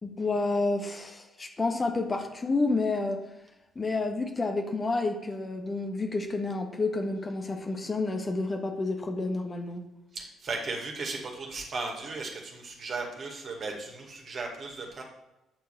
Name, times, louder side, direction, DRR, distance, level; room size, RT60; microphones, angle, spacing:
voice 1, 0.0-3.2 3.7-9.8, left 3 dB, 30° left, 3 dB, 1.5 m, -29 dB
voice 2, 10.1-15.0, right 3 dB, 45° right, 1 dB, 2.2 m, -36 dB
8.8 x 4.7 x 7.2 m, 0.95 s
figure-of-eight pair, 45°, 0 cm